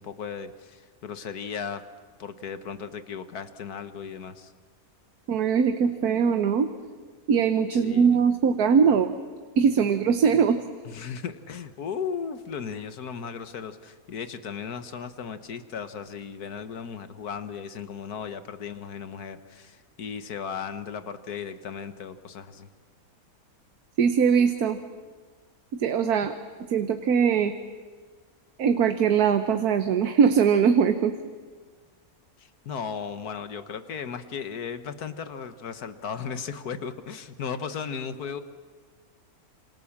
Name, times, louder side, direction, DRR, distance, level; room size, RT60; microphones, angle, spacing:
voice 1, 0.0-1.8 2.2-4.5 7.7-8.2 10.8-22.7 32.4-38.4, left 6 dB, 85° left, 10 dB, 1.8 m, -36 dB
voice 2, 5.3-6.7 7.3-9.1 9.6-10.6 24.0-24.8 25.7-26.4 26.7-27.5 28.6-31.1, right 6 dB, 85° right, 8 dB, 1.5 m, -21 dB
27.5 x 27.0 x 7.3 m, 1.5 s
omnidirectional pair, 1.6 m